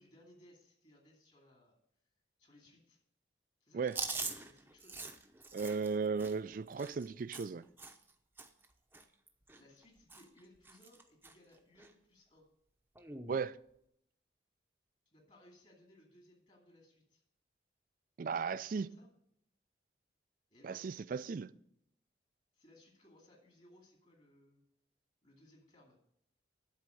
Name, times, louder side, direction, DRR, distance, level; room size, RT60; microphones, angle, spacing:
voice 1, 0.0-1.8 2.4-3.0 3.6-5.0 9.5-12.5 15.1-17.2 18.5-19.1 20.5-20.9 22.5-24.6 25.2-26.0, left 1 dB, 40° left, 2.2 m, -63 dB
Chewing mastication, 3.9-8.1 8.4-8.7 8.9-9.8 10.1-10.4 10.7-11.3 11.8-11.9 13.0-13.4, right 3 dB, 10° right, 0.7 m, -44 dB
voice 2, 5.5-7.6 13.3-13.6 18.2-18.9 20.6-21.5, right 5 dB, 50° right, 0.4 m, -36 dB
11.5 x 4.3 x 7.7 m
head